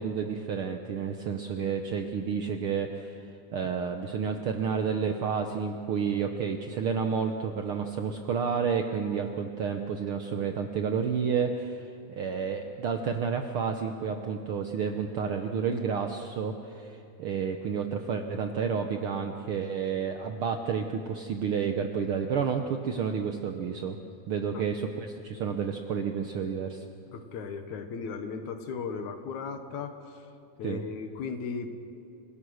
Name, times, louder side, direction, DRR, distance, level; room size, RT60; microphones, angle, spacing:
voice 1, 0.0-3.2 3.5-24.0 24.3-26.8 30.6-30.8, right 6 dB, 70° right, 5 dB, 1.3 m, -30 dB
voice 2, 27.1-30.2 30.6-31.7, left 5 dB, 75° left, 7 dB, 2.7 m, -36 dB
27.5 x 17.0 x 6.3 m, 2.5 s
omnidirectional pair, 3.5 m